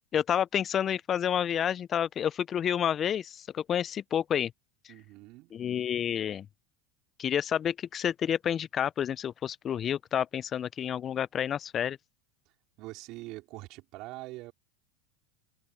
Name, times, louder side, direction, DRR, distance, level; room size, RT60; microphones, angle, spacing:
voice 1, 0.1-4.5 4.8-4.9 5.5-6.5 7.2-12.0, left 9 dB, 35° left, 0.5 m, -29 dB
voice 2, 4.9-5.5 12.8-14.5, right 20 dB, 55° right, 4.6 m, -43 dB
hypercardioid pair, 95°, 0 cm